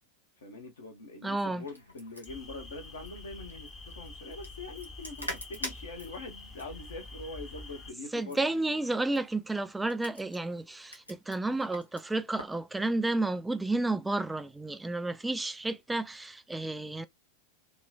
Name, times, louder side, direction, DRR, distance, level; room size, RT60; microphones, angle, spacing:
voice 1, 0.4-8.8, left 3 dB, 65° left, 1.1 m, -44 dB
voice 2, 1.2-1.6 8.1-17.0, right 2 dB, 5° right, 0.3 m, -31 dB
sound 1, 1.5-12.6, left 1 dB, 85° left, 0.8 m, -46 dB
sound 2, 2.3-7.9, left 2 dB, 20° left, 0.8 m, -46 dB
2.9 x 2.3 x 2.3 m
figure-of-eight pair, 90°, 0 cm